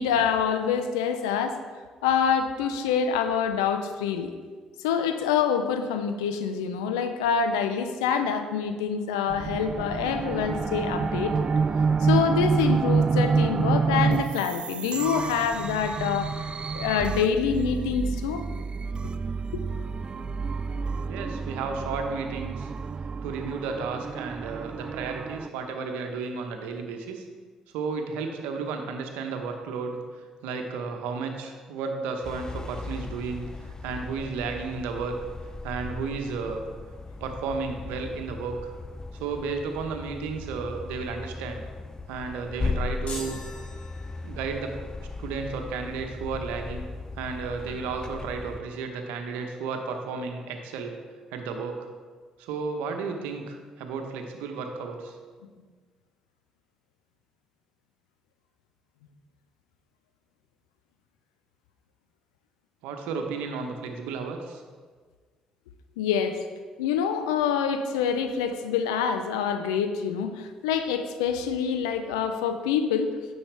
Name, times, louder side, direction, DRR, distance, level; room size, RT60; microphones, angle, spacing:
voice 1, 0.0-1.6 2.0-4.3 4.8-11.4 12.0-18.4 19.0-19.1 19.5-19.6 66.0-66.4 66.8-73.1, left 7 dB, 85° left, 8 dB, 0.6 m, -26 dB
sound 1, 9.3-25.5, right 5 dB, 40° right, 0.3 m, -28 dB
voice 2, 21.1-22.7 23.2-27.2 27.7-30.0 30.4-35.2 35.6-36.6 37.2-38.7 39.2-41.6 42.1-43.4 44.2-44.8 45.2-46.9 47.2-50.9 51.3-51.9 52.4-55.2 62.8-64.6, right 4 dB, 80° right, 4 dB, 0.9 m, -33 dB
sound 2, 32.2-48.6, left 3 dB, 25° left, 0.5 m, -37 dB
sound 3, 43.1-44.6, left 2 dB, 55° left, 1.9 m, -41 dB
9.9 x 7.0 x 3.4 m, 1.5 s
hypercardioid pair, 50°, 3 cm